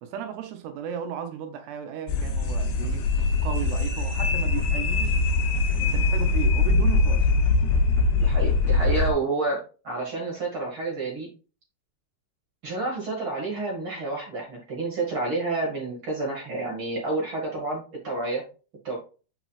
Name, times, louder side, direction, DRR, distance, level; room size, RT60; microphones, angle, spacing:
voice 1, 0.0-3.0 3.4-5.2 5.8-7.3, right 9 dB, 80° right, 2.6 m, -35 dB
sound 1, 2.1-9.1, left 3 dB, 90° left, 3.3 m, -22 dB
voice 2, 8.1-11.3 12.6-18.4 18.8-19.0, right 2 dB, 50° right, 1.6 m, -29 dB
7.4 x 6.0 x 2.4 m
omnidirectional pair, 5.3 m